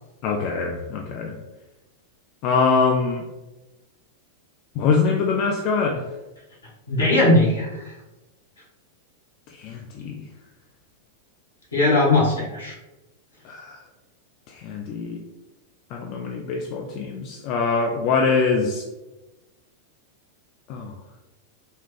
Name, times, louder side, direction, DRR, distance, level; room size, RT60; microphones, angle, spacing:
voice 1, 0.2-1.4 2.4-3.2 4.8-6.0 9.6-10.2 13.4-13.8 14.5-15.2 15.9-18.8 20.7-20.9, left 4 dB, 40° left, 2 dB, 0.4 m, -23 dB
voice 2, 6.9-7.9 11.7-12.7, left 2 dB, 75° left, -5 dB, 1.3 m, -19 dB
4.3 x 2.4 x 3.6 m, 1.0 s
figure-of-eight pair, 90°, 0 cm